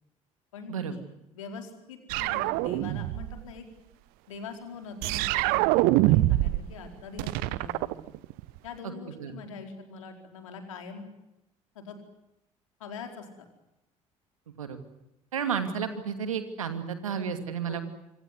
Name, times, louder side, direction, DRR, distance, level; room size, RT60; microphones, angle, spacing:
voice 1, 0.5-1.0 1.3-3.6 4.3-8.0 8.6-11.1 11.7-12.0 12.8-13.5 17.7-17.8, left 5 dB, 75° left, 4 dB, 4.5 m, -43 dB
sound 1, 2.1-3.4 5.0-6.7 6.9-8.6, right 18 dB, 60° right, 0.9 m, -25 dB
voice 2, 15.3-17.8, right 7 dB, 80° right, 8 dB, 2.6 m, -32 dB
26.5 x 24.5 x 7.9 m, 0.89 s
figure-of-eight pair, 55°, 17 cm